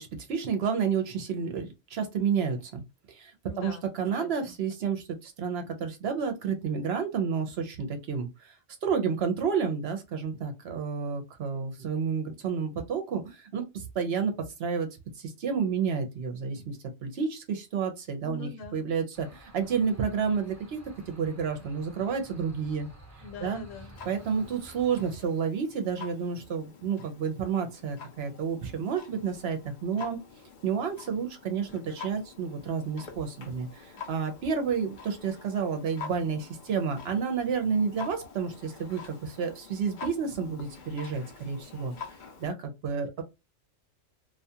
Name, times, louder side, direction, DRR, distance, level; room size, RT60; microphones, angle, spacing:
voice 1, 0.0-2.8 3.1-3.3 3.6-8.5 8.8-14.3 14.6-14.9 15.2-20.8 21.1-22.9 23.4-23.6 24.1-30.2 30.6-41.9 42.4-43.2, right 6 dB, 60° right, 0.8 m, -30 dB
voice 2, 3.5-3.9 4.2-4.5 18.2-18.9 23.2-24.0, left 4 dB, 90° left, 1.1 m, -43 dB
sound 1, 19.1-25.1, right 2 dB, 15° right, 0.9 m, -51 dB
Clock, 23.9-42.5, left 5 dB, 50° left, 0.6 m, -47 dB
2.4 x 2.3 x 2.6 m
omnidirectional pair, 1.3 m